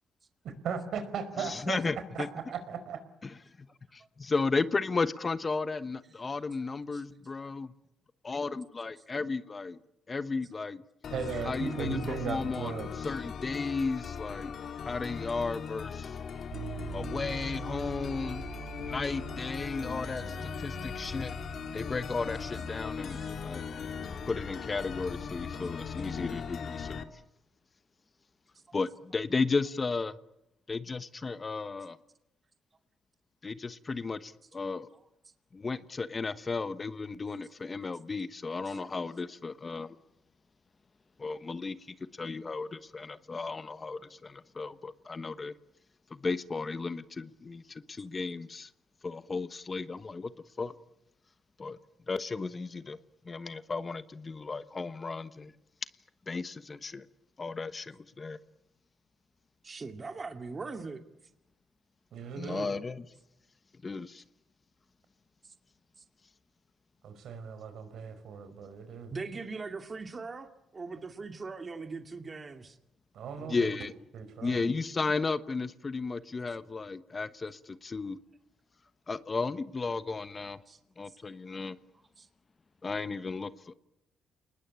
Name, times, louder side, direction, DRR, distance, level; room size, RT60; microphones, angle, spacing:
voice 1, 0.6-1.8 2.1-3.0 11.1-12.9 62.1-62.7 67.0-69.1 73.1-73.7 74.1-74.6, right 6 dB, 70° right, 10 dB, 5.0 m, -37 dB
voice 2, 1.4-2.3 4.2-7.7 8.2-9.8 10.1-10.8 11.5-14.5 14.8-16.2 16.9-18.4 18.8-21.3 21.7-23.7 24.3-27.0 28.7-30.1 30.7-32.0 33.4-34.9 35.5-40.0 41.2-45.5 46.1-48.7 49.0-50.3 50.6-50.7 51.6-51.8 52.1-53.0 53.2-55.5 56.3-57.1 57.4-58.4 62.4-63.1 63.8-64.2 73.4-73.9 74.4-78.2 79.1-80.6 81.0-81.8 82.8-83.7, left 4 dB, 30° left, 14 dB, 1.1 m, -34 dB
sound 1, 11.0-27.0, left 6 dB, 60° left, 2.3 m, -39 dB
sound 2, 16.5-26.3, right 8 dB, 90° right, 4.5 m, -46 dB
voice 3, 59.6-61.0 69.1-72.8 80.7-80.8 81.1-81.2 82.2-82.3, right 4 dB, 30° right, 7 dB, 2.4 m, -40 dB
28.5 x 20.0 x 8.8 m, 0.89 s
cardioid pair, 90°, 0 cm